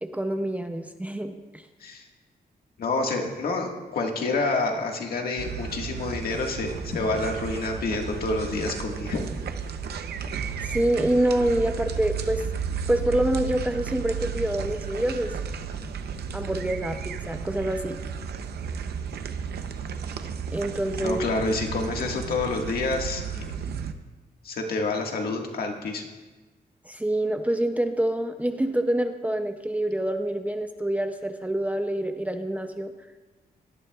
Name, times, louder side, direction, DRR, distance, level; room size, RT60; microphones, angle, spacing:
voice 1, 0.0-1.6 10.6-12.4 12.9-15.3 16.3-18.0 20.5-21.2 26.9-32.9, right 1 dB, 10° right, 6 dB, 0.5 m, -26 dB
voice 2, 2.8-9.2 21.0-23.4 24.4-26.0, left 3 dB, 70° left, 2 dB, 1.7 m, -28 dB
sound 1, 5.4-23.9, right 6 dB, 85° right, 0.7 m, -33 dB
18.5 x 12.0 x 2.3 m, 1.2 s
wide cardioid pair, 160°, 16 cm